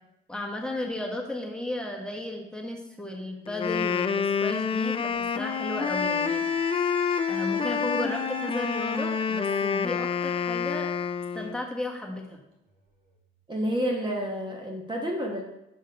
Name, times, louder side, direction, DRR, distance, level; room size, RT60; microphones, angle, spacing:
voice 1, 0.3-6.4 7.3-10.9 11.3-12.4, left 1 dB, 5° left, -1 dB, 1.4 m, -34 dB
Wind instrument woodwind instrument, 3.5-11.6, left 6 dB, 30° left, 0.4 m, -28 dB
Wind instrument woodwind instrument 2, 5.8-10.1 12.8-12.9, right 4 dB, 50° right, 1.9 m, -40 dB
voice 2, 13.5-15.4, equal, 25° right, 0 dB, 1.1 m, -29 dB
6.3 x 5.4 x 4.9 m, 0.91 s
cardioid pair, 90°, 20 cm